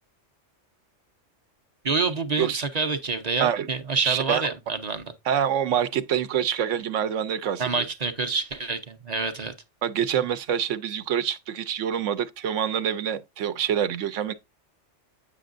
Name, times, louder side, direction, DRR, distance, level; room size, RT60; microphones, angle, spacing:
voice 1, 1.8-5.1 7.6-9.5, right 4 dB, 40° right, 0.7 m, -27 dB
voice 2, 4.0-4.4 5.3-7.9 9.8-14.3, right 9 dB, 80° right, 1.1 m, -26 dB
8.4 x 6.2 x 2.5 m
omnidirectional pair, 1.2 m